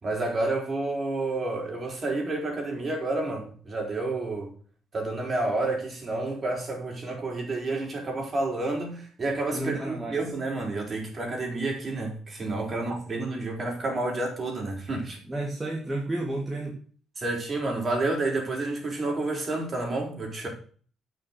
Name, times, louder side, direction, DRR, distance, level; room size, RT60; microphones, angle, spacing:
voice 1, 0.0-4.5 4.9-15.2 17.2-20.5, right 2 dB, 35° right, 4.9 m, -30 dB
voice 2, 9.5-10.2 15.3-16.8, right 2 dB, 20° right, 2.6 m, -31 dB
9.1 x 6.4 x 6.4 m
cardioid pair, 80°, 0 cm